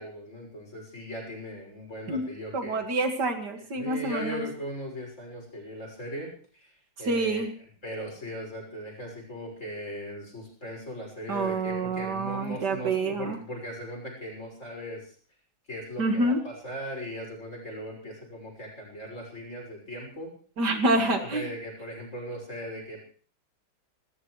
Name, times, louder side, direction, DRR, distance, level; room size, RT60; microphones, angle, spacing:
voice 1, 0.0-2.8 3.6-6.7 7.0-7.5 7.8-15.1 15.7-20.3 20.9-23.0, equal, 40° left, 0 dB, 6.6 m, -38 dB
voice 2, 2.5-4.4 7.1-7.5 11.3-13.4 16.0-16.4 20.6-21.4, right 2 dB, 70° right, 5 dB, 2.5 m, -27 dB
30.0 x 14.0 x 3.2 m, 0.43 s
omnidirectional pair, 1.9 m